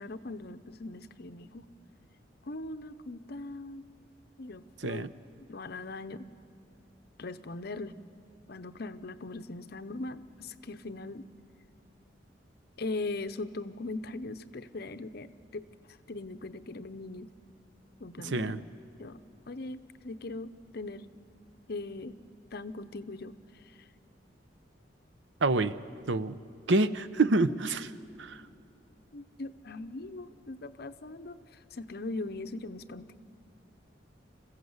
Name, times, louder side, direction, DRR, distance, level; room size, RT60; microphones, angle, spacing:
voice 1, 0.0-1.6 2.4-3.8 4.4-5.1 5.5-6.3 7.2-7.9 8.5-11.3 12.8-17.3 18.0-18.6 19.0-19.2 19.5-21.1 21.7-22.2 22.5-23.9 29.1-31.4 31.7-33.1, left 2 dB, 60° left, 11 dB, 0.7 m, -40 dB
voice 2, 18.2-18.6 25.4-25.7 26.1-26.4 26.7-27.9 28.2-28.4, right 2 dB, 85° right, 14 dB, 0.7 m, -27 dB
28.0 x 15.0 x 8.0 m, 2.6 s
head